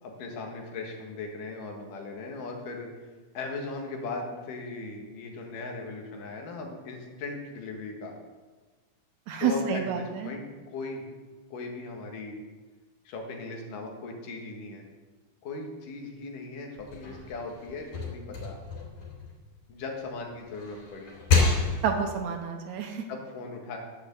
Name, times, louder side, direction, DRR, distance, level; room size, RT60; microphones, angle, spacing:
voice 1, 0.0-2.9 3.3-8.1 9.4-11.0 11.5-12.4 13.1-14.8 15.4-18.6 19.7-21.1 23.1-23.8, left 3 dB, 75° left, 2 dB, 3.2 m, -38 dB
voice 2, 9.3-10.3 21.8-23.0, right 6 dB, 75° right, 4 dB, 2.1 m, -29 dB
sound 1, 16.8-19.9 20.4-22.2, left 4 dB, 60° left, 4.2 m, -29 dB
11.0 x 6.8 x 7.6 m, 1.4 s
omnidirectional pair, 3.7 m